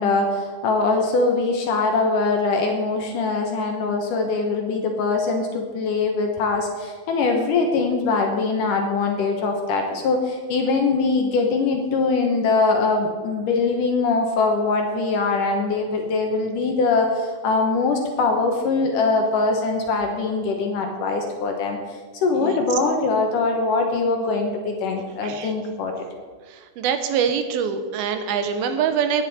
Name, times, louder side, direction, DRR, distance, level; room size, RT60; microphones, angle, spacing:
voice 1, 0.0-26.1, left 3 dB, 70° left, 2 dB, 2.5 m, -22 dB
voice 2, 26.8-29.2, right 7 dB, 85° right, 8 dB, 2.8 m, -24 dB
17.5 x 9.6 x 4.2 m, 1.5 s
omnidirectional pair, 4.2 m